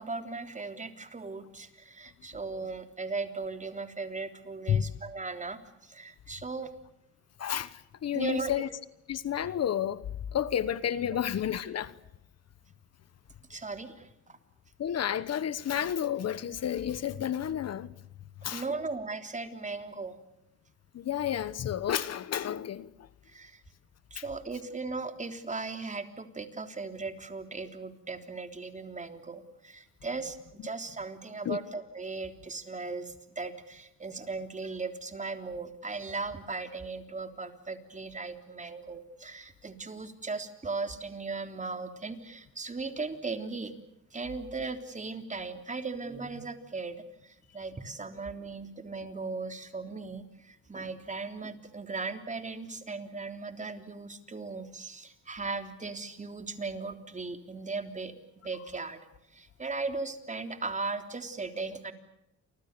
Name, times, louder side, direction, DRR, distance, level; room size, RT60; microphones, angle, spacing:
voice 1, 0.0-6.7 8.1-8.5 11.1-11.2 13.5-14.4 18.5-20.2 23.3-23.6 24.1-30.4 30.6-43.7 44.1-47.0 47.2-58.1 58.4-59.0 59.3-61.9, right 4 dB, 25° right, 3.5 m, -37 dB
voice 2, 7.4-8.7 9.1-10.0 10.3-12.0 14.8-17.9 18.4-18.6 20.9-23.1 24.1-24.2 31.4-31.6, left 9 dB, 55° left, 1.2 m, -31 dB
29.5 x 25.0 x 6.9 m
cardioid pair, 90°, 30 cm